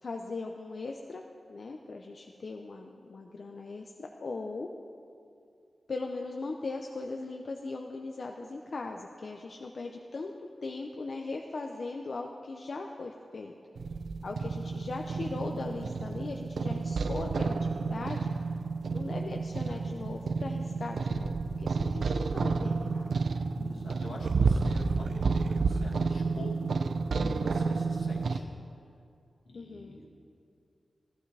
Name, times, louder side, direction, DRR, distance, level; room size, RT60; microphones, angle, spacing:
voice 1, 0.0-1.2 1.5-4.7 5.9-13.5 14.2-18.3 18.9-23.2 29.5-30.0, left 3 dB, 55° left, 2 dB, 0.6 m, -39 dB
sound 1, 13.8-28.4, right 4 dB, 75° right, 0.5 m, -30 dB
voice 2, 23.6-26.6 27.1-28.5 29.5-30.1, left 2 dB, 75° left, -3 dB, 2.1 m, -44 dB
14.5 x 13.5 x 3.3 m, 2.5 s
wide cardioid pair, 135°, 0 cm